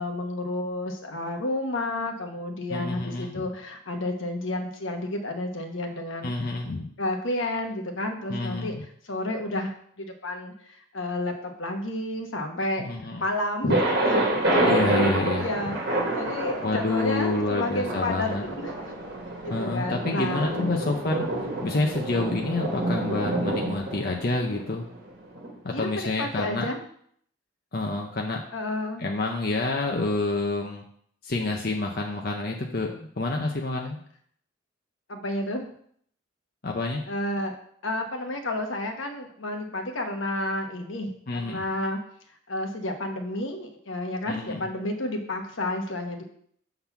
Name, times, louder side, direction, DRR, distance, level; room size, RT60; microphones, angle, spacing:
voice 1, 0.0-6.3 7.0-8.7 9.0-9.7 10.0-12.8 13.2-14.8 15.4-18.9 19.4-20.7 21.0-21.3 25.7-26.8 28.5-29.1 35.1-35.6 37.1-37.6 37.8-42.0 42.5-46.3, left 1 dB, 75° left, 4 dB, 1.1 m, -31 dB
voice 2, 2.7-3.4 6.2-6.9 8.3-8.8 12.8-13.2 14.6-15.5 16.6-18.4 19.5-24.8 25.6-26.7 27.7-28.4 29.0-30.8 31.2-34.0 36.6-37.0 41.3-41.6 44.3-44.7, left 2 dB, 50° left, 1 dB, 0.7 m, -28 dB
Thunder, 13.7-25.5, right 1 dB, 50° right, 1.7 m, -28 dB
6.9 x 4.0 x 5.8 m, 0.63 s
head